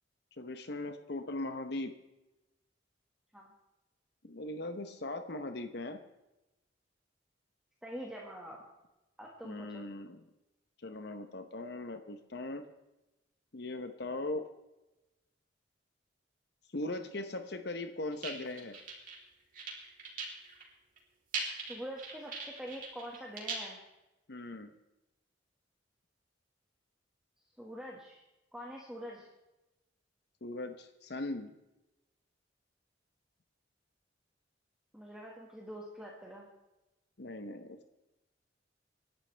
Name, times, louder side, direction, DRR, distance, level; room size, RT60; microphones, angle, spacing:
voice 1, 0.4-1.9 4.2-6.0 9.4-10.2 10.8-12.6 13.5-14.4 16.7-18.8 24.3-24.7 30.4-31.5 37.2-37.9, left 2 dB, 60° left, 8 dB, 0.9 m, -39 dB
voice 2, 7.8-8.6 9.2-9.8 21.5-23.8 27.6-28.2 28.5-29.3 34.9-36.5, equal, 5° right, -3 dB, 1.7 m, -45 dB
sound 1, 18.1-19.2 19.5-20.7 21.0-21.1 21.3-23.7, right 4 dB, 45° right, 3.4 m, -39 dB
26.5 x 11.5 x 3.4 m, 1.0 s
head